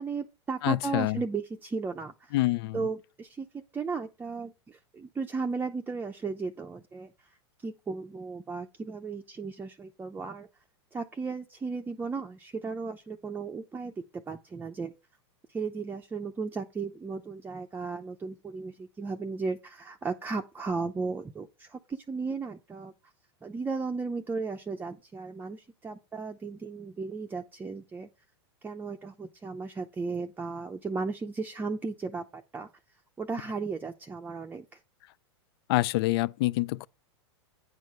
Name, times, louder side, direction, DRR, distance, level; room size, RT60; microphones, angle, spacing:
voice 1, 0.0-2.4 2.7-3.5 3.7-7.1 7.6-10.5 10.9-14.9 15.5-22.9 23.4-28.1 28.6-32.7 33.2-34.6, right 4 dB, 15° right, 0.6 m, -35 dB
voice 2, 0.6-1.2 2.3-2.8 35.7-36.9, left 18 dB, 60° left, 0.4 m, -26 dB
9.5 x 4.6 x 5.3 m
hypercardioid pair, 120°, 15 cm